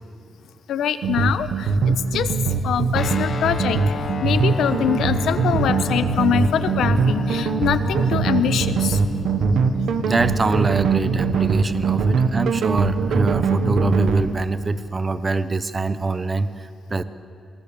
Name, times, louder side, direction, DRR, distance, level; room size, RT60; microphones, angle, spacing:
voice 1, 0.7-1.5 2.1-2.3 2.6-3.8 4.2-9.0, left 9 dB, 90° left, 11 dB, 1.1 m, -23 dB
sound 1, 1.0-14.3, right 5 dB, 85° right, 1.5 m, -22 dB
Guitar, 2.9-11.5, left 6 dB, 50° left, 1.2 m, -32 dB
voice 2, 10.0-17.0, right 3 dB, 20° right, 12 dB, 0.8 m, -24 dB
27.0 x 21.0 x 7.0 m, 2.4 s
wide cardioid pair, 160°, 0 cm